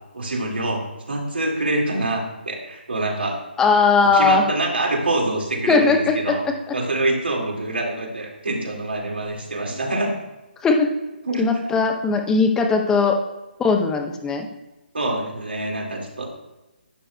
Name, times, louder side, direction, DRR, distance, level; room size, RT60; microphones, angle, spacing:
voice 1, 0.1-3.4 4.1-6.4 6.7-10.1 11.3-11.5 14.9-16.3, right 2 dB, 75° right, 0 dB, 2.1 m, -25 dB
voice 2, 3.6-4.4 5.7-6.8 10.6-11.0 11.4-13.2 13.6-14.5, left 4 dB, 10° left, 4 dB, 0.7 m, -19 dB
11.0 x 8.9 x 2.3 m, 1.0 s
figure-of-eight pair, 145°, 6 cm